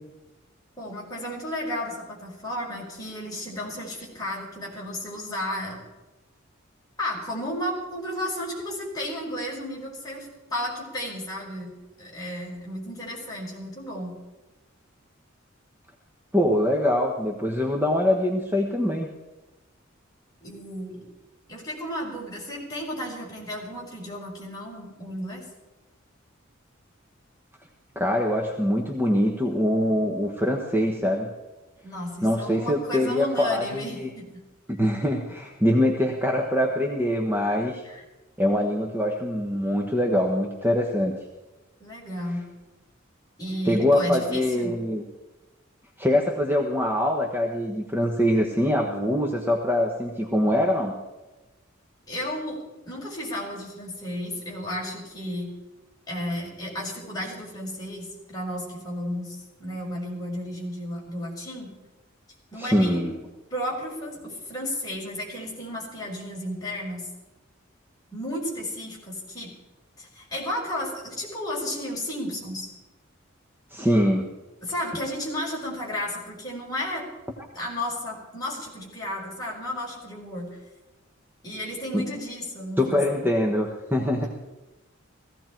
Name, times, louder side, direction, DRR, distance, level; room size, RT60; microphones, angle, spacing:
voice 1, 0.8-5.8 7.0-11.7 12.0-14.2 20.4-21.0 21.5-25.4 31.8-34.3 37.8-38.0 41.8-42.5 43.4-44.8 52.1-52.6 52.8-55.5 56.1-61.7 62.5-63.0 63.5-67.1 68.1-69.5 70.0-72.7 74.6-77.0 77.5-80.6 81.4-83.3, left 1 dB, 20° left, -4 dB, 5.0 m, -33 dB
voice 2, 16.3-19.1 27.9-31.3 32.2-34.1 34.7-37.9 38.4-41.2 43.6-45.0 46.0-50.9 62.5-63.1 73.7-74.3 81.9-82.1 82.8-84.2, left 1 dB, 10° right, 0 dB, 1.2 m, -23 dB
17.5 x 15.5 x 4.5 m, 1.1 s
head